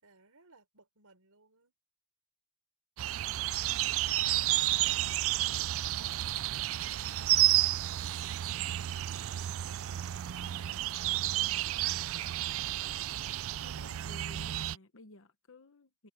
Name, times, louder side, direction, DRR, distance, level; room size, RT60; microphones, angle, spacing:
voice 1, 0.0-1.7 11.3-12.8, right 3 dB, 80° right, 4.2 m, -64 dB
sound 1, 3.0-14.8, right 15 dB, 65° right, 0.4 m, -31 dB
voice 2, 13.6-16.1, left 2 dB, 60° left, 1.0 m, -54 dB
head